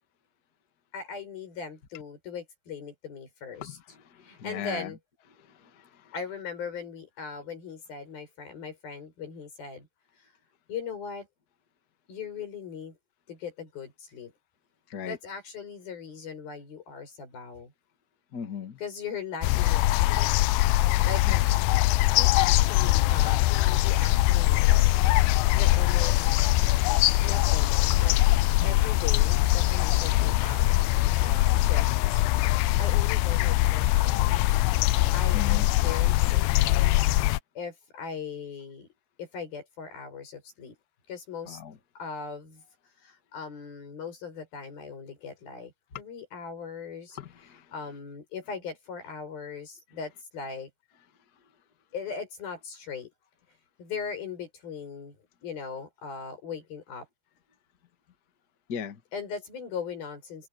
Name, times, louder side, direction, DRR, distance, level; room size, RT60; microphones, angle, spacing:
voice 1, 0.9-3.8 4.2-5.0 6.1-9.9 10.2-10.3 10.7-11.3 12.1-13.0 13.3-14.3 15.0-17.7 18.8-20.3 21.1-21.2 22.1-26.3 27.2-28.1 28.6-30.7 31.2-32.3 32.8-34.6 35.1-38.9 39.2-40.8 41.1-41.6 42.0-42.6 43.0-47.2 47.7-50.7 51.9-53.1 53.8-55.2 55.4-57.1 59.1-60.5, left 5 dB, 65° left, 8.9 m, -39 dB
voice 2, 3.6-4.9 5.5-6.1 14.9-15.2 18.3-18.8 21.3-21.4 27.9-28.0 28.6-28.8 35.3-35.7 41.4-41.8 45.9-46.0 47.1-47.7 58.7-59.0, left 8 dB, 35° left, 1.6 m, -38 dB
sound 1, 19.4-37.4, left 17 dB, 80° left, 2.2 m, -22 dB
omnidirectional pair, 4.5 m